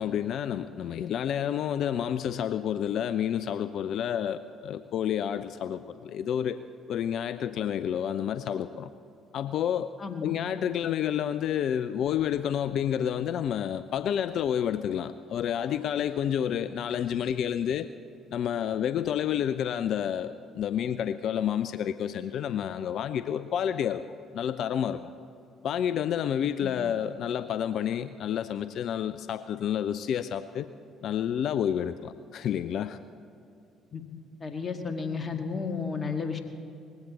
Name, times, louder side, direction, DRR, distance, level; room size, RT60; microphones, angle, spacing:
voice 1, 0.0-6.6 6.9-8.9 9.3-9.9 10.2-17.9 18.3-24.0 24.3-25.1 25.6-30.7 31.0-33.0, left 9 dB, 60° left, 13 dB, 0.4 m, -29 dB
voice 2, 10.0-10.3 26.6-26.7 33.9-34.0 34.4-36.4, left 5 dB, 35° left, 6 dB, 1.7 m, -32 dB
19.5 x 15.5 x 4.1 m, 2.6 s
hypercardioid pair, 50°, 0 cm